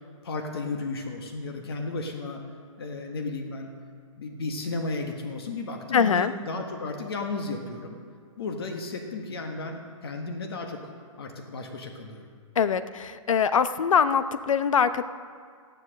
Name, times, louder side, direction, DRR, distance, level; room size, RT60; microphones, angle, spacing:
voice 1, 0.2-2.4 2.8-3.7 4.2-8.0 8.4-10.8 11.2-12.2, left 3 dB, 45° left, 3 dB, 1.4 m, -34 dB
voice 2, 5.9-6.3 12.6-15.0, left 7 dB, 70° left, 13 dB, 0.8 m, -23 dB
14.5 x 11.0 x 6.4 m, 2.1 s
hypercardioid pair, 175°, 17 cm